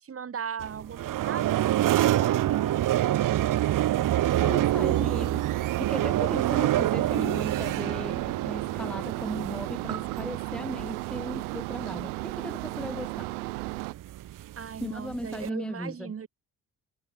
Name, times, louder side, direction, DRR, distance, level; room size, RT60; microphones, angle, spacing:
voice 1, 0.0-2.8 14.6-16.3, right 7 dB, 30° right, 1.1 m, -37 dB
sound 1, 0.6-15.5, right 13 dB, 45° right, 0.7 m, -27 dB
sound 2, 4.3-13.9, right 25 dB, 80° right, 1.0 m, -35 dB
voice 2, 4.4-5.4 5.8-13.3 14.8-16.1, left 1 dB, ahead, 1.3 m, -37 dB
hypercardioid pair, 45°, 44 cm